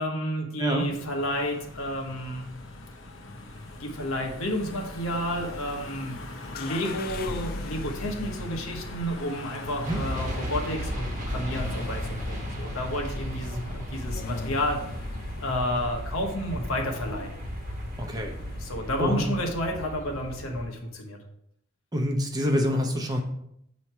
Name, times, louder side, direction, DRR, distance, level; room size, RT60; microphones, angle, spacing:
voice 1, 0.0-2.5 3.8-14.8 15.4-17.3 18.3-21.2, equal, 90° left, 2 dB, 1.1 m, -31 dB
voice 2, 0.6-0.9 9.8-10.0 18.0-18.3 19.0-19.2 21.9-23.2, equal, 20° right, 2 dB, 0.7 m, -26 dB
Car passing by / Engine, 0.8-19.5, left 1 dB, 70° left, 0.7 m, -43 dB
sound 1, 6.5-19.4, left 3 dB, 45° left, 0.4 m, -41 dB
sound 2, 9.8-20.7, equal, 35° right, 1.0 m, -35 dB
7.0 x 3.2 x 4.4 m, 0.73 s
head